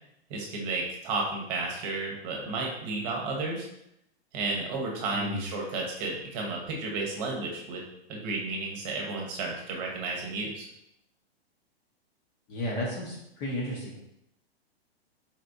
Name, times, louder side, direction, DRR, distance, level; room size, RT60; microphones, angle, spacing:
voice 1, 0.3-3.7 4.3-7.8 8.1-10.7, right 3 dB, 40° right, 0 dB, 1.0 m, -32 dB
voice 2, 12.5-13.9, left 1 dB, 35° left, -3 dB, 0.9 m, -33 dB
4.3 x 3.3 x 2.6 m, 0.79 s
hypercardioid pair, 125°, 31 cm